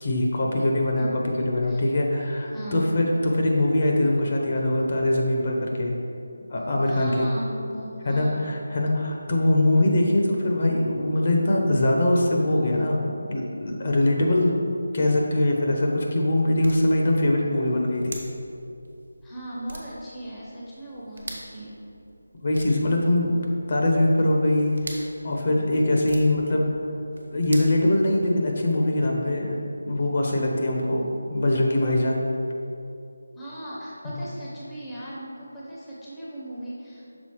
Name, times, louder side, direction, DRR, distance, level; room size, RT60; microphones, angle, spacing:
voice 1, 0.0-1.1 1.4-5.9 6.5-7.3 8.1-14.6 14.9-18.2 22.3-23.3 23.7-24.7 25.2-26.7 27.3-29.6 29.8-32.2, left 1 dB, 40° left, 0 dB, 0.7 m, -22 dB
voice 2, 0.9-1.8 2.5-2.8 6.8-8.4 19.2-21.8 30.8-31.1 33.3-37.2, right 1 dB, 5° left, -9 dB, 0.7 m, -37 dB
sound 1, 15.5-28.6, right 1 dB, 85° right, 1.2 m, -45 dB
6.2 x 3.9 x 4.5 m, 2.6 s
figure-of-eight pair, 170°, 0 cm